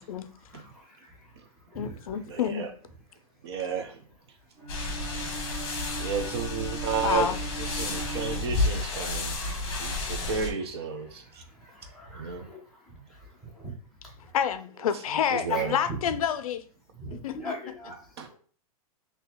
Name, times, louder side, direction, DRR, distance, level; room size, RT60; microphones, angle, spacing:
voice 1, 0.2-2.2 3.1-3.5 4.3-6.1 6.7-6.8 7.8-8.5 8.8-10.3 10.6-14.4 15.5-16.2 16.9-18.3, right 1 dB, ahead, 0.7 m, -44 dB
voice 2, 1.8-2.7 7.0-7.4 14.3-16.6 17.2-17.5, left 8 dB, 70° left, 0.4 m, -28 dB
voice 3, 2.3-2.7 3.4-4.0 6.0-9.3 9.8-11.4 12.1-12.5 15.3-15.8 18.2-18.3, right 6 dB, 45° right, 0.6 m, -32 dB
Bowed string instrument, 4.6-9.2, right 4 dB, 20° right, 1.3 m, -40 dB
sound 1, 4.7-10.5, left 2 dB, 45° left, 0.9 m, -31 dB
3.8 x 2.8 x 2.9 m
supercardioid pair, 175°, 19 cm